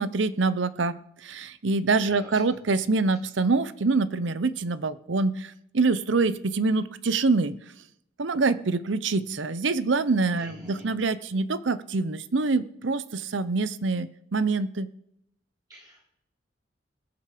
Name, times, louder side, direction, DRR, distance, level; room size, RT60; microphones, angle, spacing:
voice 1, 0.0-7.5 8.2-14.9, right 3 dB, 75° right, 15 dB, 0.7 m, -25 dB
voice 2, 2.0-2.4 10.3-10.8 15.7-16.1, right 1 dB, 20° right, -4 dB, 7.4 m, -46 dB
21.0 x 8.3 x 5.0 m, 0.78 s
head